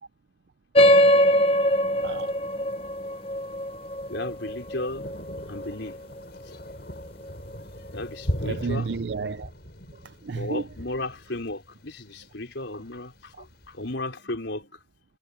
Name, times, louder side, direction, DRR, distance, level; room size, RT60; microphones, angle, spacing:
sound 1, 0.7-5.7, equal, 30° left, 1.0 m, -22 dB
Thunder, 2.0-13.9, equal, 55° left, 7.8 m, -40 dB
voice 1, 2.0-2.3 8.4-9.5 10.0-10.6 13.4-13.5, right 4 dB, 60° right, 0.5 m, -31 dB
voice 2, 4.1-5.1 5.5-6.0 7.9-8.9 10.3-14.8, left 2 dB, 75° left, 4.7 m, -34 dB
head